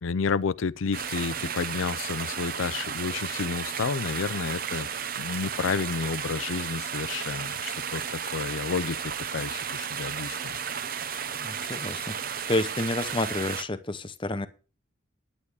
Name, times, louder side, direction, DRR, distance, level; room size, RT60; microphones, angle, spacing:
voice 1, 0.0-4.9 5.2-10.6, left 5 dB, 85° left, 0.5 m, -31 dB
sound 1, 0.9-13.6, right 7 dB, 45° right, 0.8 m, -33 dB
voice 2, 11.4-12.2 12.5-14.5, left 2 dB, 25° left, 0.8 m, -29 dB
10.0 x 9.6 x 4.9 m
head